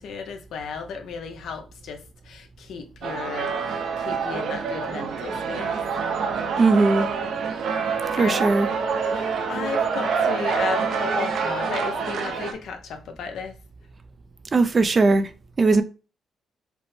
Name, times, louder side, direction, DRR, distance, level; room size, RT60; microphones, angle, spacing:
voice 1, 0.0-5.8 7.6-7.9 8.2-8.6 9.1-13.5, left 5 dB, 75° left, 0.8 m, -34 dB
sound 1, 3.0-12.5, right 5 dB, 70° right, 0.7 m, -26 dB
voice 2, 6.6-7.1 8.2-8.7 14.5-15.3 15.6-15.8, right 3 dB, 35° right, 0.5 m, -18 dB
5.1 x 2.1 x 3.1 m
cardioid pair, 90°, 0 cm